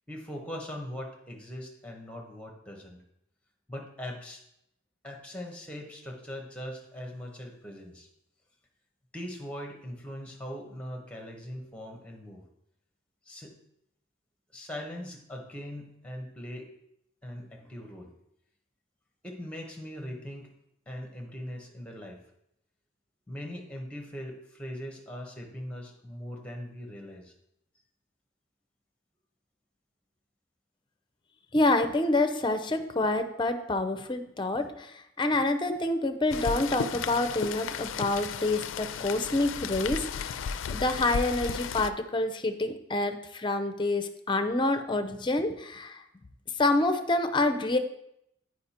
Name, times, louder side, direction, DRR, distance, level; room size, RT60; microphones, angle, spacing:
voice 1, 0.1-3.0 3.7-4.4 5.0-8.1 9.1-12.4 13.3-13.5 14.5-16.7 17.2-18.1 19.2-20.5 20.9-22.2 23.3-27.3, equal, 5° left, 1 dB, 1.1 m, -40 dB
voice 2, 31.5-40.4 40.7-46.0 46.6-47.8, left 2 dB, 25° left, 9 dB, 0.6 m, -27 dB
Rain, 36.3-41.9, left 6 dB, 85° left, 0.4 m, -34 dB
8.8 x 5.0 x 4.3 m, 0.79 s
head